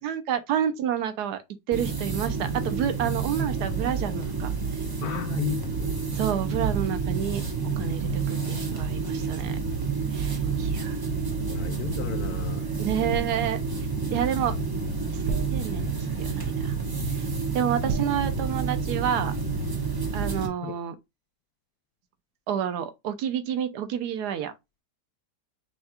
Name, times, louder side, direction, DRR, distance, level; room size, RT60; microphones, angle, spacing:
voice 1, 0.0-1.4 1.7-4.6 6.1-9.6 10.1-11.0 12.8-13.6 14.1-14.6 15.1-15.2 15.5-16.8 17.1-17.3 17.5-19.3 20.1-21.0 22.5-24.5, right 9 dB, 75° right, 1.1 m, -29 dB
sound 1, 1.7-20.5, right 5 dB, 25° right, 0.4 m, -29 dB
voice 2, 5.0-5.9 10.4-11.0 11.5-12.6 20.6-20.7, left 10 dB, 70° left, 1.0 m, -34 dB
sound 2, 13.1-13.9 15.2-16.2 17.9-19.0 19.2-19.5, right 4 dB, 55° right, 1.1 m, -35 dB
5.6 x 2.3 x 2.8 m
omnidirectional pair, 1.9 m